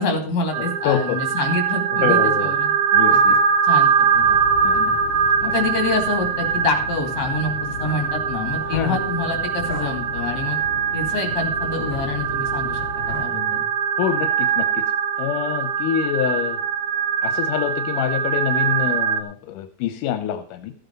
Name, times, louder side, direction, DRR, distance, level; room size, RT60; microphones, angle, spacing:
voice 1, 0.0-2.7 3.1-3.4 3.6-4.4 4.7-5.0 5.4-10.6 10.9-13.6, left 3 dB, 60° left, 5 dB, 3.7 m, -27 dB
sound 1, 0.5-19.2, right 7 dB, 70° right, 2.5 m, -22 dB
voice 2, 0.8-1.2 2.0-2.5 2.9-3.4 4.6-4.8 5.4-5.5 8.7-9.0 14.0-14.8 15.2-16.6 17.2-20.7, left 10 dB, 85° left, 9 dB, 2.3 m, -25 dB
sound 2, 4.1-13.2, left 7 dB, 45° left, 2.2 m, -35 dB
14.5 x 8.0 x 5.3 m, 0.41 s
omnidirectional pair, 3.6 m